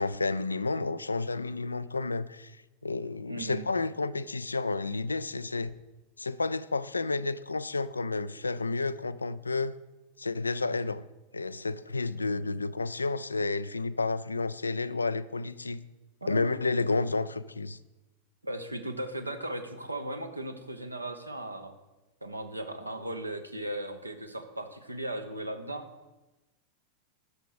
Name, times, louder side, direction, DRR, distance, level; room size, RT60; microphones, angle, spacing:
voice 1, 0.0-2.5 2.8-5.7 6.2-9.7 10.2-11.1 11.3-15.8 16.3-17.8, left 3 dB, 80° left, 0.4 m, -31 dB
voice 2, 3.3-3.7 16.2-16.5 18.4-21.7 22.2-25.8, right 1 dB, 85° right, 1.0 m, -37 dB
11.5 x 6.7 x 5.0 m
figure-of-eight pair, 90°, 0 cm